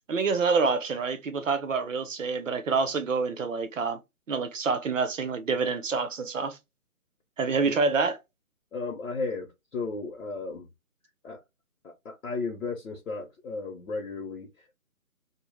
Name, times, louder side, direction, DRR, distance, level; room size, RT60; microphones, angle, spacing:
voice 1, 0.1-4.0 4.3-6.6 7.4-8.2, right 4 dB, 60° right, 0.6 m, -27 dB
voice 2, 8.7-10.7 11.2-11.4 11.8-14.8, left 3 dB, 65° left, 0.6 m, -35 dB
2.0 x 2.0 x 3.1 m
hypercardioid pair, 170°, 44 cm